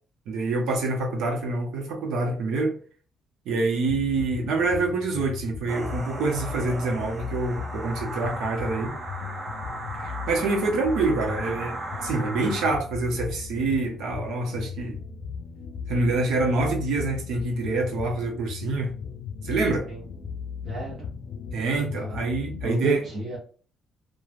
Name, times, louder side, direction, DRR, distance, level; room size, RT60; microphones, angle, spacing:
voice 1, 0.3-2.8 3.4-8.9 9.9-15.0 15.9-19.0 19.4-19.8 21.5-23.0, right 3 dB, 90° right, 0.9 m, -26 dB
sound 1, 3.9-22.7, left 6 dB, 80° left, 0.4 m, -37 dB
sound 2, 5.7-12.8, right 2 dB, 25° right, 0.5 m, -36 dB
voice 2, 20.6-21.1 21.7-22.2 22.6-23.4, right 4 dB, 50° right, 0.9 m, -30 dB
3.2 x 2.3 x 2.5 m
cardioid pair, 165°, 0 cm